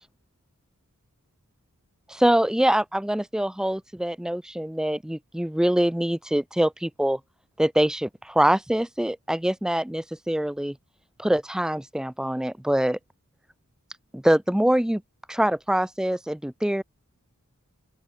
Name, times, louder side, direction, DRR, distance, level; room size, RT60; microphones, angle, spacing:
voice 1, 2.1-7.2 7.6-10.7 11.2-13.0 14.1-15.0 15.3-16.8, right 1 dB, 5° right, 0.4 m, -24 dB
open air
head